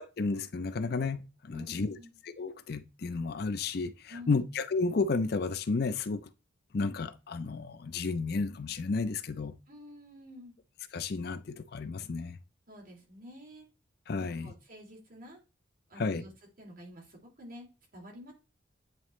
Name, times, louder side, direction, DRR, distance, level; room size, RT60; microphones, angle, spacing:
voice 1, 0.2-2.0 2.2-6.3 6.7-9.5 10.9-12.4 14.1-14.5 16.0-16.2, left 4 dB, 55° left, 0.5 m, -32 dB
voice 2, 1.5-2.1 4.1-4.4 9.7-10.5 12.7-13.6 14.2-15.4 15.9-16.3 16.6-18.3, left 1 dB, 45° right, 2.7 m, -49 dB
9.0 x 3.9 x 3.1 m
head